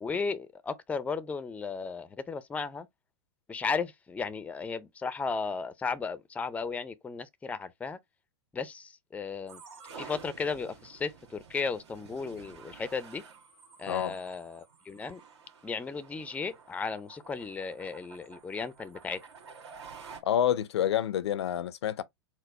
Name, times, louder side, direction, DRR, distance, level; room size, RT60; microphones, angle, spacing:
voice 1, 0.0-2.9 3.5-8.0 8.5-9.6 10.0-13.2 13.8-15.2 15.6-19.2, left 5 dB, 10° left, 0.4 m, -35 dB
sound 1, 9.5-20.2, right 5 dB, 75° right, 1.7 m, -51 dB
voice 2, 20.2-22.0, left 10 dB, 75° left, 0.5 m, -28 dB
4.4 x 2.1 x 4.2 m
hypercardioid pair, 105°, 14 cm